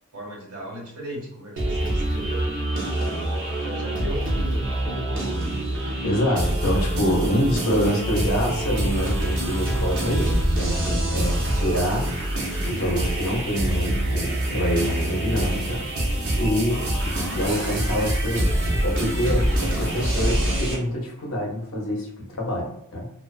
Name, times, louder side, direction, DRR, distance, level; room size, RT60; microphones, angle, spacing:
voice 1, 0.1-5.5, equal, 85° right, -3 dB, 1.0 m, -37 dB
sound 1, 1.6-20.8, right 1 dB, 55° right, 0.6 m, -25 dB
voice 2, 6.0-12.2 12.6-15.9 16.4-18.5 18.8-23.1, equal, 65° left, -1 dB, 0.7 m, -26 dB
2.3 x 2.3 x 2.4 m, 0.72 s
head